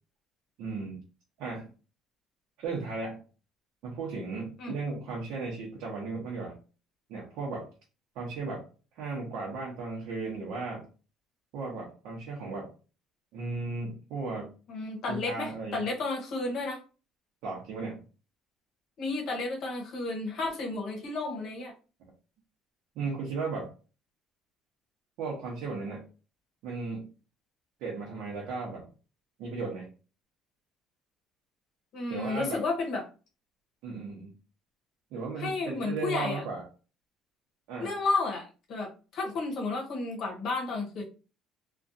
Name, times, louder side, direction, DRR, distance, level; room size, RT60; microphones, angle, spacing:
voice 1, 0.6-1.0 1.4-1.7 2.6-3.2 3.8-6.6 7.1-7.7 8.2-8.7 9.0-10.9 11.5-12.7 13.3-14.5 15.1-15.9 17.4-18.1 23.0-23.7 25.2-26.0 26.6-27.1 27.8-28.9 29.4-29.9 32.1-32.6 33.8-34.3 35.1-36.6 37.7-37.9, right 4 dB, 70° right, -4 dB, 0.8 m, -35 dB
voice 2, 14.7-16.8 19.0-21.7 31.9-33.0 35.4-36.4 37.8-41.0, left 3 dB, 45° left, 1 dB, 0.8 m, -32 dB
2.4 x 2.2 x 2.6 m, 0.35 s
cardioid pair, 170°, 0 cm